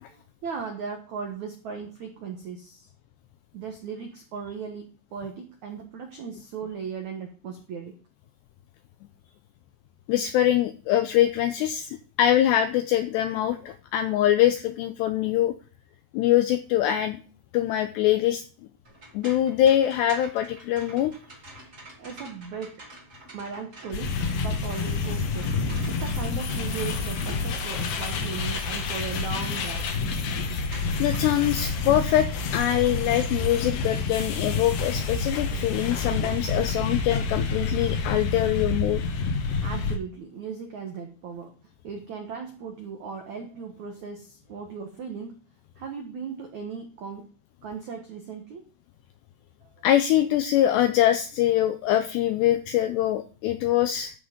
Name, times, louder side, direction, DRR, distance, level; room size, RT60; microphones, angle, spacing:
voice 1, 0.1-2.9 3.5-4.8 5.1-8.0 21.6-21.7 22.0-22.7 23.3-25.5 25.9-29.9 30.3-30.5 39.4-41.5 41.8-45.4 45.8-47.2 47.6-48.6 49.6-49.7, right 6 dB, 80° right, 3 dB, 1.7 m, -37 dB
voice 2, 10.1-15.5 16.1-17.2 17.5-18.4 19.1-21.1 31.0-39.0 49.8-54.1, left 12 dB, 85° left, 9 dB, 2.4 m, -23 dB
sound 1, 18.8-33.0, right 2 dB, 30° right, 1.5 m, -48 dB
sound 2, 23.9-40.0, left 4 dB, 65° left, 2.2 m, -28 dB
14.0 x 5.9 x 5.2 m, 0.39 s
omnidirectional pair, 5.7 m